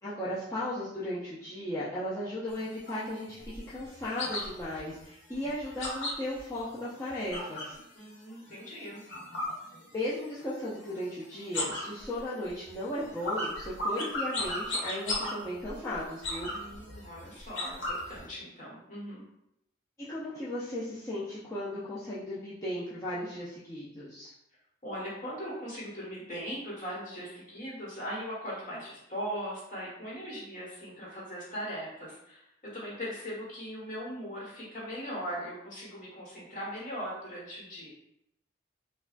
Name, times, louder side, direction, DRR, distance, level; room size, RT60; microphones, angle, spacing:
voice 1, 0.0-7.7 9.9-16.5 20.1-24.3, left 1 dB, 15° left, -10 dB, 0.5 m, -36 dB
sound 1, 2.5-7.8 8.1-10.3 10.6-11.1 11.4-18.2, left 1 dB, 80° left, 1.1 m, -36 dB
voice 2, 7.9-9.0 16.5-19.2 24.8-37.9, equal, 40° left, -6 dB, 1.5 m, -39 dB
4.6 x 2.3 x 2.5 m, 0.80 s
head